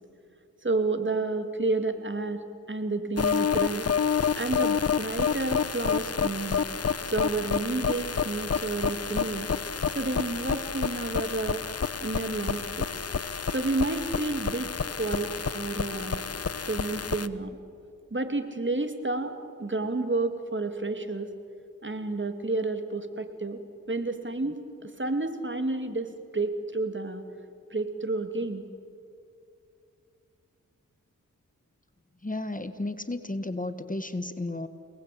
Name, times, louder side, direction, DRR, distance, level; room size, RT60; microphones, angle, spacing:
voice 1, 0.6-3.9 4.3-6.6 7.1-9.5 9.9-11.6 12.0-12.9 13.5-16.2 16.7-17.6 18.1-21.3 21.8-23.6 23.9-27.2 27.7-28.6, right 2 dB, 35° right, 8 dB, 2.7 m, -30 dB
sound 1, 3.2-17.3, left 6 dB, 45° left, 1.1 m, -29 dB
voice 2, 32.2-34.7, left 2 dB, 25° left, 11 dB, 1.5 m, -33 dB
29.5 x 19.5 x 8.6 m, 2.4 s
cardioid pair, 45°, 33 cm